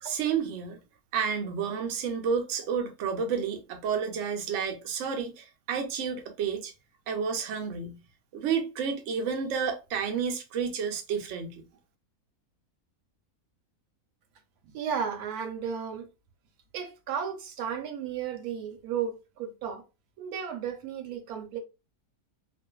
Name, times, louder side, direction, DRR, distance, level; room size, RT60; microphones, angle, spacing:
voice 1, 0.0-0.8 1.1-6.7 7.1-8.0 8.3-11.6, right 6 dB, 65° right, 0.8 m, -30 dB
voice 2, 14.7-16.1 16.7-19.8 20.2-21.6, right 7 dB, 85° right, 1.1 m, -34 dB
2.4 x 2.4 x 2.2 m
omnidirectional pair, 1.6 m